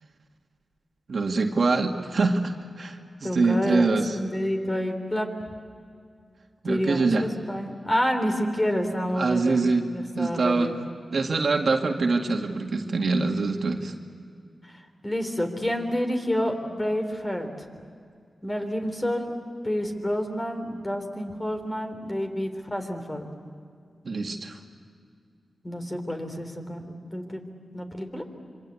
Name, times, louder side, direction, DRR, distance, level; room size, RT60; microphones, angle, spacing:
voice 1, 1.1-2.5 2.8-4.2 6.6-7.3 9.1-9.9 10.2-10.7 11.1-13.9 24.0-24.6, right 3 dB, 65° right, 3 dB, 2.0 m, -24 dB
voice 2, 3.2-5.3 6.6-9.6 9.9-10.7 15.0-17.5 18.4-19.3 19.6-23.3 25.6-27.4 27.7-28.2, equal, 20° left, 5 dB, 3.6 m, -28 dB
26.5 x 24.5 x 8.4 m, 2.3 s
cardioid pair, 70°, 0 cm